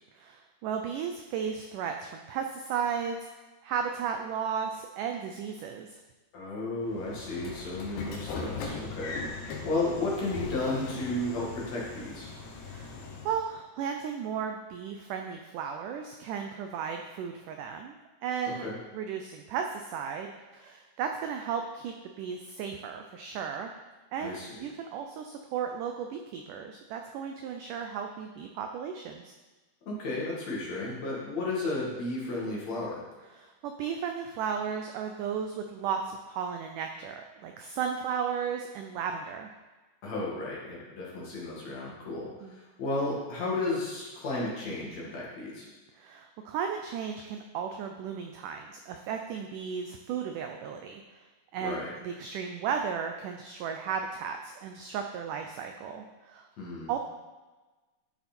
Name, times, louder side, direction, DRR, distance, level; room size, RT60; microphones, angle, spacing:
voice 1, 0.1-3.2 3.6-6.0 12.6-13.0 13.2-17.9 18.2-18.7 18.9-23.7 24.1-29.3 33.3-39.5 42.4-42.6 45.9-51.0 51.5-56.5 56.9-57.0, right 7 dB, 85° right, 5 dB, 1.8 m, -35 dB
voice 2, 6.3-12.3 18.6-18.7 24.2-24.6 29.8-33.0 40.0-45.7 51.6-51.9 56.6-56.9, left 2 dB, 50° left, -4 dB, 2.8 m, -33 dB
Train / Sliding door, 6.9-13.4, left 4 dB, 70° left, 2.9 m, -39 dB
12.5 x 7.0 x 4.4 m, 1.2 s
omnidirectional pair, 4.4 m